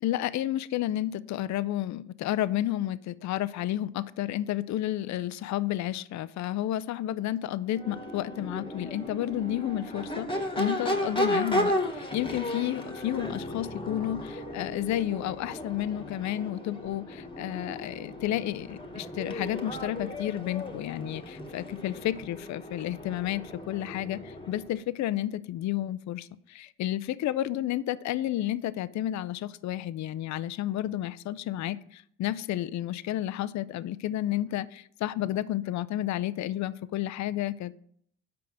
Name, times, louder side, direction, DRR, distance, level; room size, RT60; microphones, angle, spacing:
voice 1, 0.0-37.7, left 13 dB, 55° left, 16 dB, 0.5 m, -31 dB
Crowd / Race car auto racing / Accelerating revving vroom, 7.7-24.8, left 1 dB, 15° left, 1.4 m, -35 dB
5.9 x 4.8 x 6.3 m, 0.64 s
supercardioid pair, 55°, 34 cm